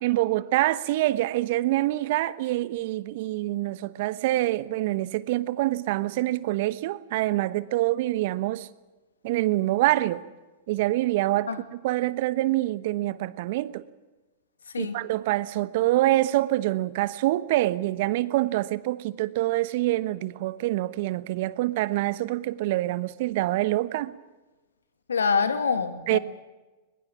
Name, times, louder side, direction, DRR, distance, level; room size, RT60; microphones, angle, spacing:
voice 1, 0.0-8.7 9.2-10.2 10.7-13.8 14.8-24.2 26.1-26.2, right 16 dB, 55° right, 16 dB, 1.1 m, -26 dB
voice 2, 25.1-26.2, left 5 dB, 80° left, 9 dB, 2.3 m, -25 dB
21.5 x 21.5 x 7.3 m, 1.2 s
figure-of-eight pair, 100°, 0 cm